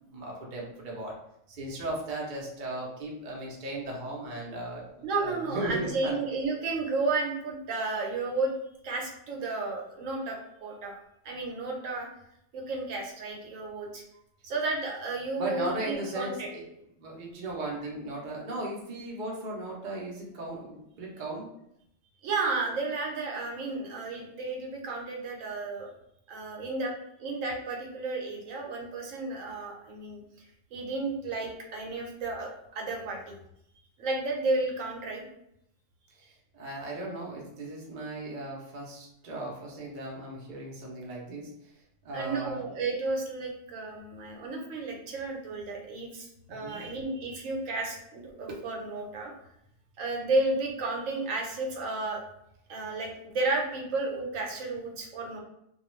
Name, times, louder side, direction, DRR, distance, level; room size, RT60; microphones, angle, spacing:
voice 1, 0.1-1.1 1.5-6.2 15.4-16.7 17.0-21.5 36.2-41.5 42.0-42.6 46.5-46.9, right 2 dB, 50° right, -3 dB, 0.6 m, -37 dB
voice 2, 5.0-8.5 8.8-11.0 11.2-12.1 12.5-14.0 14.4-16.5 22.2-25.9 26.3-26.9 27.2-33.3 34.0-35.2 42.1-49.3 50.0-52.2 52.7-55.4, right 3 dB, 75° right, 0 dB, 1.0 m, -32 dB
2.3 x 2.2 x 3.0 m, 0.77 s
omnidirectional pair, 1.4 m